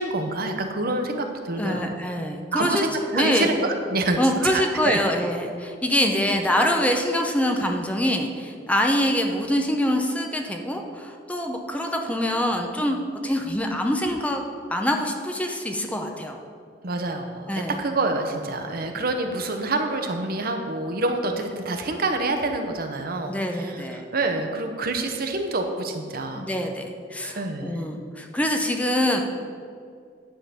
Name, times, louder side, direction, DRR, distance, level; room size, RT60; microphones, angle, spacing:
voice 1, 0.0-1.8 2.5-5.0 16.8-26.5 27.2-27.8, right 2 dB, 55° right, 5 dB, 0.8 m, -27 dB
voice 2, 1.6-2.9 3.1-3.5 4.2-14.4 14.7-16.4 17.5-17.8 23.3-24.0 26.3-29.2, equal, 10° left, 3 dB, 0.6 m, -25 dB
10.0 x 3.8 x 6.7 m, 2.2 s
head